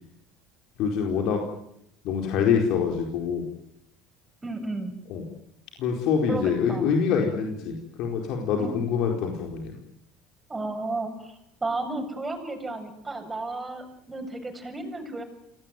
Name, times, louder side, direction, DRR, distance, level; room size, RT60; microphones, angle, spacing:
voice 1, 0.8-1.4 2.0-3.5 5.1-5.2 5.8-9.7, left 6 dB, 65° left, 1 dB, 4.5 m, -25 dB
voice 2, 4.4-5.0 6.3-6.9 8.6-8.7 10.5-15.2, right 2 dB, 15° right, 5 dB, 7.3 m, -33 dB
27.0 x 19.0 x 9.3 m, 0.76 s
supercardioid pair, 100°, 0 cm